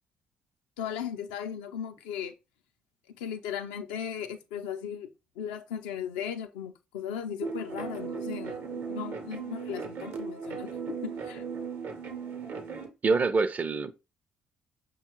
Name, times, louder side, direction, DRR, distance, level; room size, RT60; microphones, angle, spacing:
voice 1, 0.8-2.3 3.2-5.1 5.4-11.4, left 8 dB, 85° left, 0.4 m, -37 dB
sound 1, 7.4-12.9, right 6 dB, 70° right, 0.8 m, -37 dB
voice 2, 13.0-13.9, right 4 dB, 40° right, 0.4 m, -25 dB
5.5 x 2.2 x 3.0 m
hypercardioid pair, 50°, 4 cm